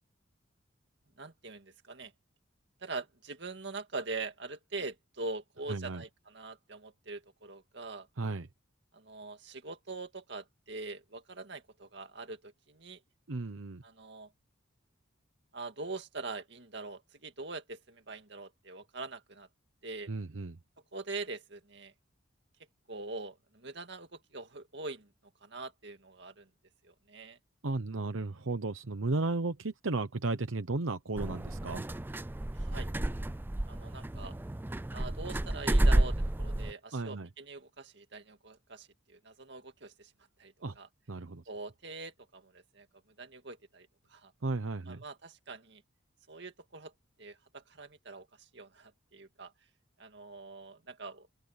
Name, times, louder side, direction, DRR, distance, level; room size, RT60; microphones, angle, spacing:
voice 1, 1.2-2.1 2.8-8.1 8.9-13.0 13.8-14.3 15.5-19.5 19.8-20.1 20.9-21.9 22.9-25.1 25.4-26.5 26.8-27.4 32.6-32.9 33.7-34.3 34.9-40.1 40.4-40.9 41.5-42.9 43.2-44.3 44.9-45.8 46.3-46.9 47.2-49.5 50.0-51.3, right 3 dB, 60° right, 2.2 m, -43 dB
voice 2, 5.7-6.0 8.2-8.5 13.3-13.8 20.1-20.6 27.6-31.8 36.9-37.3 40.6-40.8 41.1-41.4 44.4-45.0, right 3 dB, 85° right, 0.9 m, -34 dB
sound 1, 31.2-36.7, right 1 dB, 10° right, 0.3 m, -30 dB
open air
head